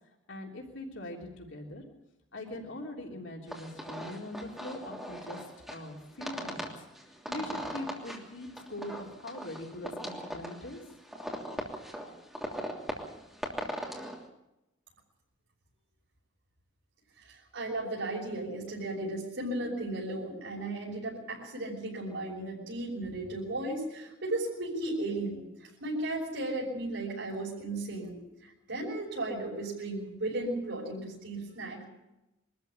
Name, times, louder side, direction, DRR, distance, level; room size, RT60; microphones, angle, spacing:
voice 1, 0.3-1.8 2.3-5.4 5.7-6.7 7.3-10.8, left 1 dB, 80° left, -1 dB, 3.4 m, -42 dB
sound 1, 3.5-14.2, equal, ahead, 3.1 m, -40 dB
voice 2, 17.2-31.8, right 2 dB, 85° right, -5 dB, 6.3 m, -35 dB
23.5 x 14.0 x 8.8 m, 0.95 s
head